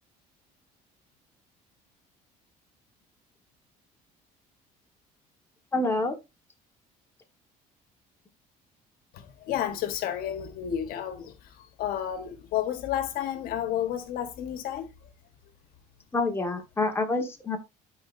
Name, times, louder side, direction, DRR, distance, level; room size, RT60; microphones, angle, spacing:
voice 1, 5.7-6.2 16.1-17.6, left 2 dB, 15° left, 1.6 m, -27 dB
voice 2, 9.1-14.9, left 10 dB, 75° left, 1.3 m, -31 dB
11.5 x 4.9 x 2.6 m
cardioid pair, 120°, 15 cm